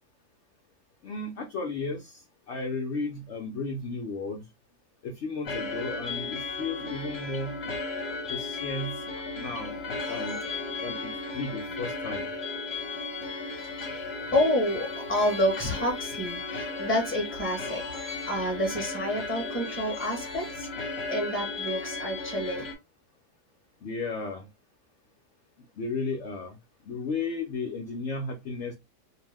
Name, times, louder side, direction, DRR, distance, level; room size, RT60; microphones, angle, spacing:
voice 1, 1.0-2.2 2.5-4.5 5.0-7.6 8.3-9.0 9.3-10.4 10.8-12.3 23.8-24.5 25.8-26.6 26.9-28.8, left 3 dB, 70° left, 3 dB, 0.7 m, -34 dB
sound 1, 5.4-22.7, left 3 dB, 50° left, 1.0 m, -35 dB
voice 2, 14.3-22.7, left 1 dB, 10° left, 0 dB, 0.9 m, -29 dB
2.7 x 2.1 x 3.3 m, 0.21 s
omnidirectional pair, 1.7 m